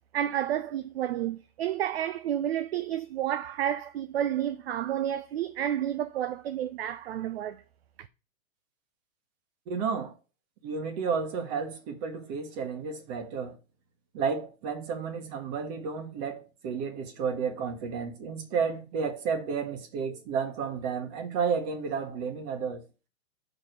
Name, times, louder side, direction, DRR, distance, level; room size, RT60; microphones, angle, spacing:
voice 1, 0.1-7.6, right 11 dB, 50° right, 0.5 m, -30 dB
voice 2, 9.7-10.1 10.6-13.6 14.1-22.8, right 6 dB, 30° right, 1.4 m, -32 dB
5.4 x 5.1 x 6.4 m
hypercardioid pair, 150°, 41 cm